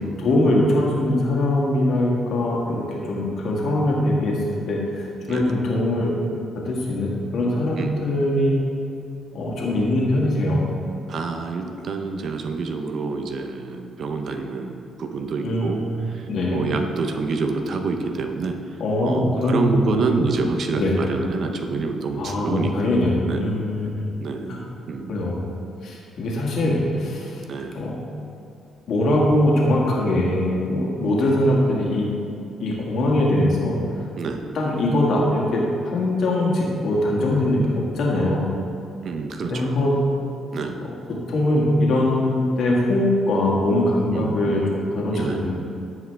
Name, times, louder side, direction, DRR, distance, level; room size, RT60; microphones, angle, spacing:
voice 1, 0.0-4.4 4.7-6.2 6.6-8.5 9.3-10.6 15.4-15.9 16.3-16.6 18.8-20.0 20.8-20.9 22.2-23.1 23.4-23.9 24.5-24.6 25.1-25.4 25.8-27.4 27.7-28.0 28.9-32.1 32.6-33.8 34.5-38.5 39.4-40.0 40.8-40.9 41.3-45.6, left 1 dB, 70° left, -3 dB, 2.0 m, -22 dB
voice 2, 11.1-16.3 16.5-18.6 19.0-22.9 23.3-23.5 24.2-25.1 27.5-27.8 34.2-34.4 39.0-39.7 40.5-40.8 44.1-44.6 45.1-45.4, right 4 dB, 60° right, 5 dB, 0.7 m, -27 dB
14.5 x 5.1 x 3.5 m, 2.6 s
cardioid pair, 90°, 0 cm